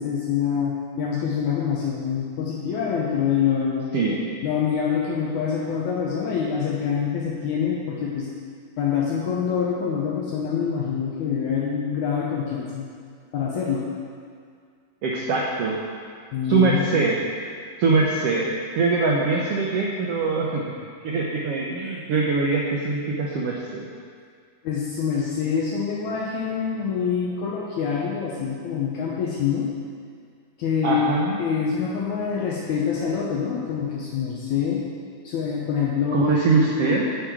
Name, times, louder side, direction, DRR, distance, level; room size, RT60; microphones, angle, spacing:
voice 1, 0.0-3.9 4.4-8.3 8.8-12.9 13.3-13.9 16.3-16.9 24.6-29.7 30.6-34.8 35.2-36.2, left 7 dB, 75° left, -4 dB, 2.1 m, -25 dB
voice 2, 15.0-15.8 16.5-17.2 17.8-20.7 21.0-23.9 30.8-31.4 36.1-37.1, right 3 dB, 85° right, -2 dB, 1.3 m, -22 dB
8.9 x 4.8 x 7.3 m, 2.1 s
omnidirectional pair, 3.7 m